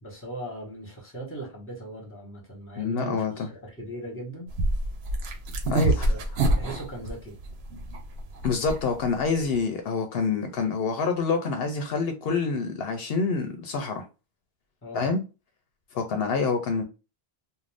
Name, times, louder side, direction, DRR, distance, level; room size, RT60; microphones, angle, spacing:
voice 1, 0.0-4.5 5.7-6.2 6.5-7.4 14.8-15.1, right 1 dB, 15° left, 1.1 m, -39 dB
voice 2, 2.8-3.5 5.7-6.1 8.4-14.1 14.9-15.2 15.9-16.8, left 4 dB, 70° left, 0.8 m, -27 dB
sound 1, 4.5-9.6, right 2 dB, 85° right, 0.9 m, -27 dB
2.5 x 2.2 x 3.3 m
omnidirectional pair, 1.0 m